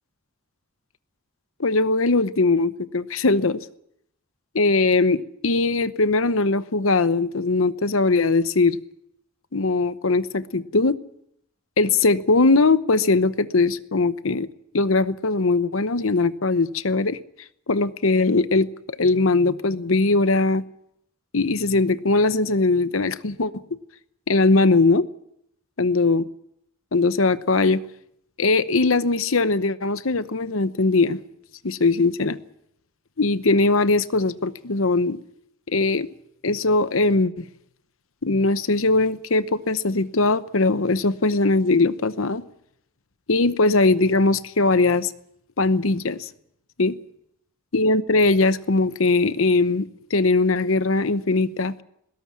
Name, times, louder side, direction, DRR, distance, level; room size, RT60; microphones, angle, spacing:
voice 1, 1.6-3.6 4.5-8.8 9.5-11.0 11.8-14.5 14.7-17.2 17.7-18.7 19.0-20.6 21.3-23.5 24.3-25.0 25.8-26.2 26.9-27.8 28.4-31.2 31.6-32.4 33.2-35.2 35.7-36.1 36.4-37.5 38.2-42.4 43.3-45.1 45.6-46.3 46.8-46.9 47.7-51.7, left 3 dB, 75° left, 14 dB, 0.9 m, -20 dB
20.5 x 17.5 x 7.4 m, 0.74 s
head